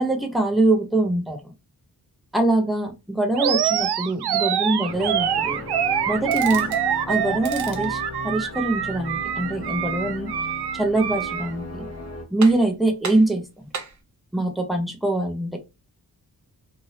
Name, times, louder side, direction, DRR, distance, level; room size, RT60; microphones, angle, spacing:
voice 1, 0.0-1.5 2.3-5.6 6.1-6.7 7.1-10.3 10.7-11.9 12.3-13.7 14.3-15.6, right 2 dB, ahead, 3 dB, 0.6 m, -23 dB
Animal, 3.4-11.5, right 9 dB, 80° right, 0.5 m, -25 dB
sound 1, 4.9-12.2, left 2 dB, 40° left, 0.9 m, -37 dB
sound 2, 6.2-6.9 7.3-7.9 10.9-11.5 11.9-12.0 12.4-12.8 13.0-14.0, right 5 dB, 45° right, 0.7 m, -36 dB
2.7 x 2.6 x 3.1 m, 0.26 s
wide cardioid pair, 145°, 39 cm